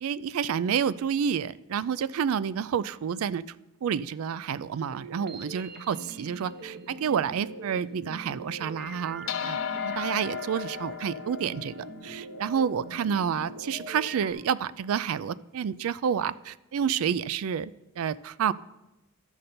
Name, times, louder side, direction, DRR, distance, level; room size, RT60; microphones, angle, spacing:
voice 1, 0.0-3.4 3.8-11.7 12.0-18.5, right 7 dB, 80° right, 17 dB, 0.3 m, -29 dB
sound 1, 4.9-14.3, right 3 dB, 50° right, 0.9 m, -43 dB
sound 2, 9.3-13.9, left 8 dB, 65° left, 0.5 m, -36 dB
12.5 x 6.6 x 4.2 m, 0.96 s
head